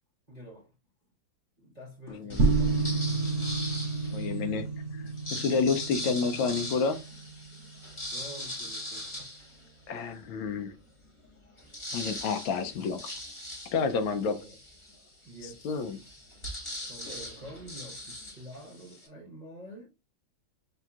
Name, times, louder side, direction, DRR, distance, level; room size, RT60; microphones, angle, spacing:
voice 1, 0.3-0.7 1.6-3.2 4.3-4.6 8.1-9.3 13.9-14.6 15.2-16.1 16.8-19.9, equal, 35° right, 0.7 m, -48 dB
voice 2, 2.1-2.5 4.1-4.6 5.3-7.0 9.9-10.8 11.9-13.2 13.7-14.4 15.4-16.0, left 5 dB, 80° left, 1.3 m, -29 dB
sound 1, 2.3-4.5 5.0-10.2 10.7-10.8 11.1-19.1, left 1 dB, 45° left, 0.3 m, -41 dB
sound 2, 2.4-7.6, right 3 dB, 60° right, 1.1 m, -30 dB
5.7 x 2.8 x 2.3 m
omnidirectional pair, 2.2 m